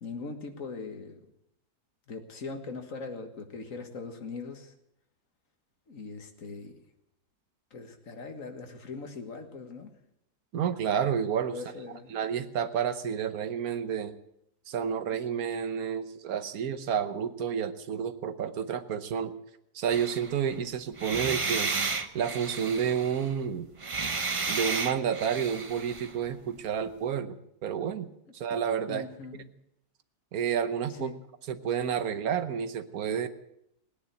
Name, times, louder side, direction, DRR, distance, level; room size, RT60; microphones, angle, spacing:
voice 1, 0.0-1.2 2.1-4.7 5.9-6.8 7.7-9.9 11.5-12.1 28.9-29.5 30.9-31.2, left 4 dB, 55° left, 5 dB, 2.0 m, -40 dB
voice 2, 10.5-11.6 12.1-14.2 14.7-19.3 19.7-21.7 22.1-23.7 24.5-28.1 28.3-29.1 30.3-31.1 31.5-33.3, right 8 dB, 65° right, 11 dB, 1.3 m, -30 dB
sound 1, 19.9-20.5 21.0-23.3 23.8-26.1, right 4 dB, 35° right, 0.5 m, -33 dB
18.0 x 9.9 x 8.1 m, 0.79 s
omnidirectional pair, 1.7 m